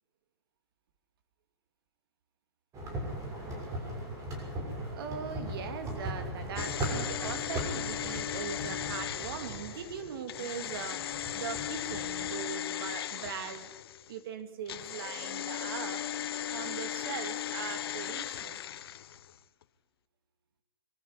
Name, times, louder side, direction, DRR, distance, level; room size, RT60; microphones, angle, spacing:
sound 1, 2.7-12.3, right 1 dB, 25° right, 6.6 m, -39 dB
voice 1, 4.9-13.7 14.1-16.1 16.5-18.6, right 7 dB, 60° right, 9 dB, 2.6 m, -40 dB
sound 2, 6.6-14.1 14.7-19.4 19.6-19.7, left 11 dB, 65° left, 1.0 m, -37 dB
22.5 x 14.0 x 9.8 m, 1.0 s
hypercardioid pair, 140°, 13 cm